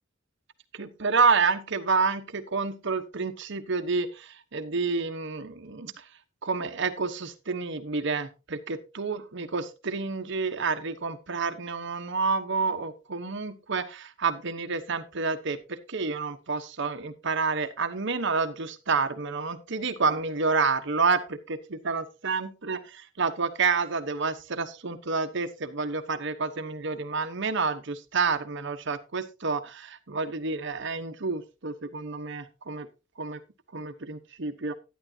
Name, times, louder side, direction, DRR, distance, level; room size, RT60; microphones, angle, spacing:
voice 1, 0.7-6.0 6.4-32.9 33.2-33.4 33.7-34.7, right 4 dB, 65° right, 9 dB, 1.0 m, -29 dB
11.5 x 10.5 x 2.8 m, 0.28 s
head